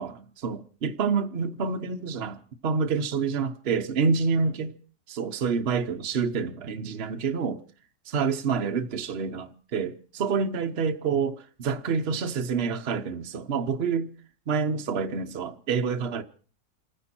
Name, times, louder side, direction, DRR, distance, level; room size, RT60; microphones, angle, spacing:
voice 1, 0.0-4.7 5.1-7.6 8.1-14.1 14.5-16.2, right 5 dB, 45° right, 1.1 m, -28 dB
28.5 x 10.0 x 4.4 m
omnidirectional pair, 1.7 m